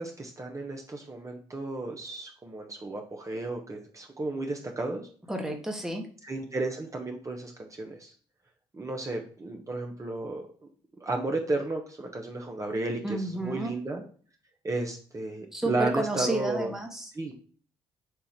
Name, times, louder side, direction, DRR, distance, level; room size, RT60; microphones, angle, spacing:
voice 1, 0.0-5.1 6.2-8.1 8.7-10.5 11.0-14.0 14.6-16.7 17.1-17.3, right 2 dB, 25° right, 2 dB, 1.2 m, -33 dB
voice 2, 5.3-6.1 13.0-13.7 15.5-17.1, right 1 dB, 5° right, 2 dB, 1.5 m, -31 dB
6.9 x 2.8 x 5.2 m, 0.44 s
hypercardioid pair, 60°, 12 cm